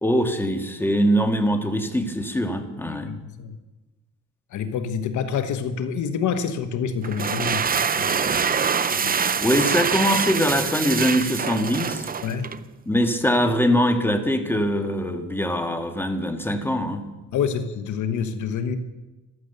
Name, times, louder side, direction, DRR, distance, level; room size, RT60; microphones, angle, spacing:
voice 1, 0.0-3.1 9.4-12.1 12.9-17.1, equal, 5° left, 6 dB, 1.9 m, -22 dB
voice 2, 2.9-3.6 4.5-9.2 12.2-12.5 17.3-18.8, left 7 dB, 75° left, 10 dB, 1.2 m, -28 dB
sound 1, 7.0-12.6, right 6 dB, 30° right, 0.7 m, -24 dB
14.0 x 13.5 x 6.8 m, 1.1 s
cardioid pair, 90°, 30 cm